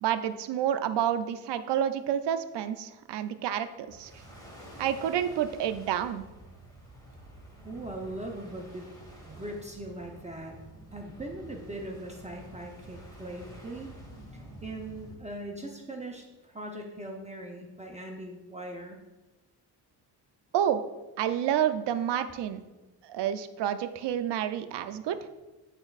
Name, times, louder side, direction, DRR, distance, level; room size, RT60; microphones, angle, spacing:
voice 1, 0.0-4.1 4.8-6.2 20.5-20.8 21.2-22.6 23.0-25.2, right 10 dB, 85° right, 10 dB, 0.5 m, -29 dB
sound 1, 3.9-15.2, right 1 dB, 10° left, 1.5 m, -49 dB
voice 2, 7.6-8.9 9.2-10.6 10.9-13.9 14.3-19.0, right 1 dB, 15° right, 1 dB, 0.7 m, -40 dB
9.0 x 4.3 x 2.4 m, 1.1 s
cardioid pair, 100°, 40 cm